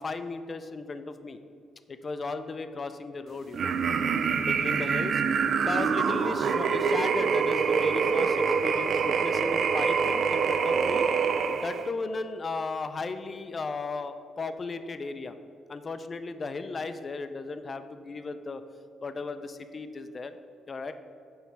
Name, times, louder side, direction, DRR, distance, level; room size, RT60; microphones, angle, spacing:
voice 1, 0.0-1.4 1.9-3.7 4.4-5.2 5.6-11.1 11.5-15.4 15.7-18.6 19.0-20.3 20.7-20.9, left 3 dB, 35° left, 10 dB, 0.4 m, -35 dB
sound 1, 3.5-11.9, right 6 dB, 60° right, 0.3 m, -25 dB
6.9 x 3.2 x 5.9 m, 2.5 s
cardioid pair, 90°, 0 cm